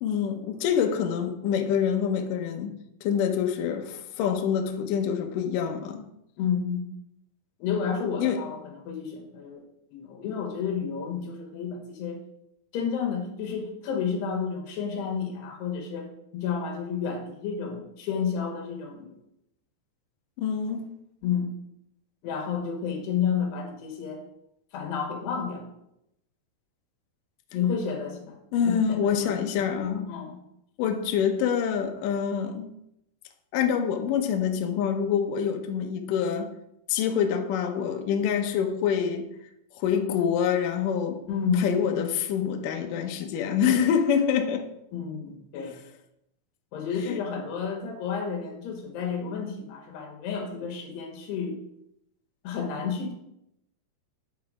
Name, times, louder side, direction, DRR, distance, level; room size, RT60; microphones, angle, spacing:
voice 1, 0.0-2.8 3.0-6.0 8.2-8.4 20.4-20.9 28.5-30.1 30.8-32.7 33.5-36.5 36.9-39.3 39.8-41.2 41.6-44.7 45.6-45.7 47.0-47.2, left 7 dB, 75° left, 2.1 m, -26 dB
voice 2, 6.4-6.8 7.6-9.6 9.9-12.2 12.7-19.2 21.2-21.5 22.2-24.2 24.7-25.7 27.5-28.4 28.6-29.4 30.1-30.4 41.3-41.7 44.9-45.8 46.7-51.6 52.4-53.1, left 6 dB, 90° left, 3.6 m, -31 dB
10.5 x 4.6 x 4.9 m
omnidirectional pair, 4.6 m